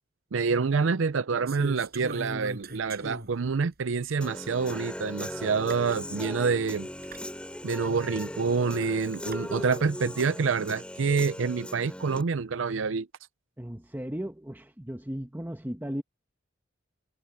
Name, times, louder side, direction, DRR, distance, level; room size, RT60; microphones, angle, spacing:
voice 1, 0.3-6.9 7.6-13.1, right 5 dB, 70° right, 0.5 m, -27 dB
sound 1, 1.5-3.5 4.1-4.2 5.4-5.5 5.7-6.0 7.0-7.2 8.8-9.4, right 2 dB, 55° right, 5.9 m, -39 dB
Human voice / Guitar, 4.2-12.2, left 1 dB, 5° left, 2.8 m, -38 dB
voice 2, 13.6-16.0, equal, 10° right, 1.2 m, -36 dB
head